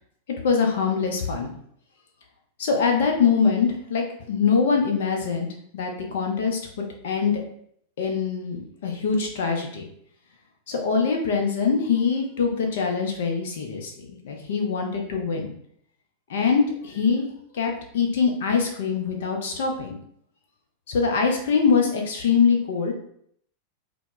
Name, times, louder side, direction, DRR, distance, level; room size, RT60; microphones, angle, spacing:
voice 1, 0.4-1.5 2.6-5.5 5.7-7.4 8.0-9.8 10.7-15.5 16.3-17.3 17.5-19.9 20.9-22.9, left 5 dB, 60° left, 2 dB, 0.5 m, -23 dB
2.0 x 2.0 x 3.0 m, 0.66 s
figure-of-eight pair, 90°, 0 cm